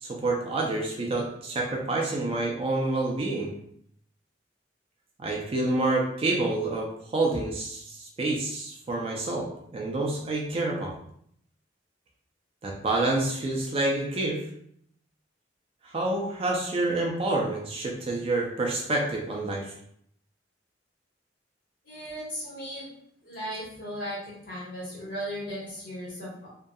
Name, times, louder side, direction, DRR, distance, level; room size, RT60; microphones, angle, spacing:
voice 1, 0.0-3.5 5.2-10.9 12.6-14.4 15.8-19.7, right 2 dB, 30° right, -1 dB, 0.4 m, -28 dB
voice 2, 21.8-22.9 23.2-24.2 24.4-26.5, equal, 50° left, -7 dB, 1.4 m, -36 dB
2.6 x 2.2 x 2.3 m, 0.68 s
head